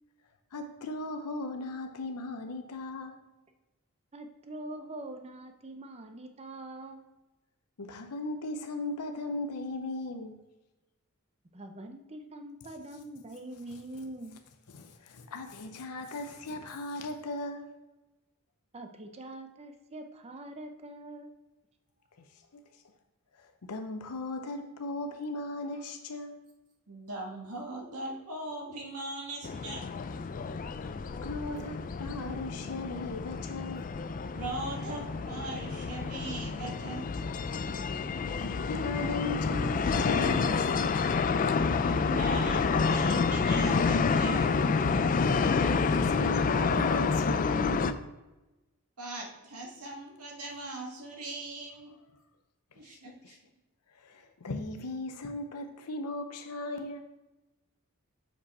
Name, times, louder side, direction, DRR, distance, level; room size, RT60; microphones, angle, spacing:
voice 1, 0.5-3.2 7.8-10.3 14.7-17.7 22.3-22.8 23.3-26.4 31.2-34.0 38.4-41.1 45.4-48.0 52.7-53.4 53.9-57.0, left 2 dB, 85° left, 5 dB, 0.7 m, -37 dB
voice 2, 4.1-7.0 11.5-14.4 18.7-21.3, right 1 dB, 30° right, 5 dB, 0.6 m, -44 dB
voice 3, 26.9-29.8 34.3-37.1 41.8-44.5 49.0-52.0 52.8-53.4, right 2 dB, 85° right, -1 dB, 1.7 m, -40 dB
sound 1, 29.4-47.9, left 5 dB, 40° left, 0.4 m, -29 dB
6.9 x 5.1 x 4.2 m, 1.1 s
head